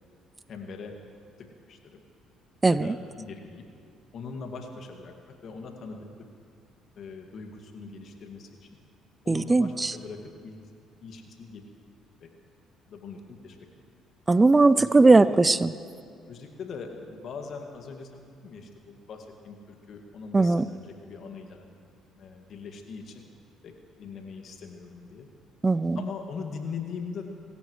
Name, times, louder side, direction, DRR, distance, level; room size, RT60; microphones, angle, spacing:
voice 1, 0.5-0.9 1.4-2.0 2.7-3.6 4.1-6.1 7.0-8.8 9.2-10.7 11.0-11.7 12.2-12.3 12.9-13.6 14.8-15.4 16.3-21.6 22.2-23.3 23.6-23.7 24.0-25.3 25.9-27.3, left 5 dB, 55° left, 3 dB, 2.1 m, -41 dB
voice 2, 9.3-9.9 14.3-15.7 20.3-20.6 25.6-26.0, right 3 dB, 25° right, 16 dB, 0.4 m, -19 dB
26.0 x 13.5 x 3.2 m, 2.3 s
hypercardioid pair, 55°, 0 cm